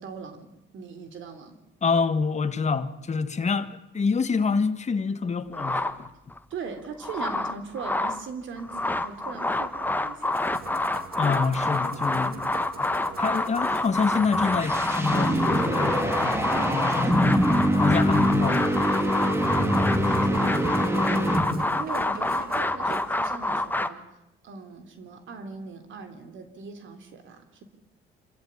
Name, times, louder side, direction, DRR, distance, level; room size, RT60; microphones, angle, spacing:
voice 1, 0.0-1.6 6.5-10.4 19.3-20.6 21.0-21.5 21.8-24.0 24.4-27.6, right 5 dB, 75° right, 3.4 m, -40 dB
voice 2, 1.8-5.8 11.2-12.5 12.8-12.9 13.2-17.4 17.7-18.8, left 5 dB, 35° left, 1.6 m, -27 dB
sound 1, 5.5-6.4 6.8-8.2 8.6-23.9, left 2 dB, 10° left, 1.3 m, -27 dB
Musical instrument, 10.2-23.1, right 5 dB, 50° right, 2.4 m, -43 dB
sound 2, 14.0-21.8, equal, 10° right, 2.9 m, -24 dB
26.0 x 14.5 x 9.7 m
cardioid pair, 90°, 20 cm